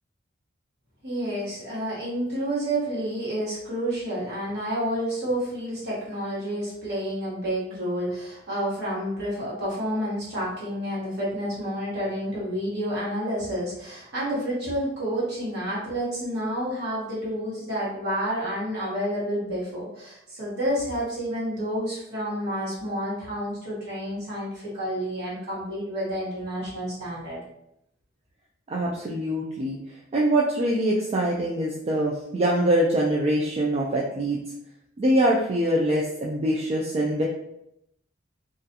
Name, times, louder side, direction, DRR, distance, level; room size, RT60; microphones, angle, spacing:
voice 1, 1.0-27.4, equal, 60° right, -7 dB, 1.3 m, -29 dB
voice 2, 28.7-29.8 30.1-34.4 35.0-37.2, right 1 dB, 35° right, -3 dB, 0.3 m, -24 dB
2.4 x 2.3 x 2.7 m, 0.79 s
head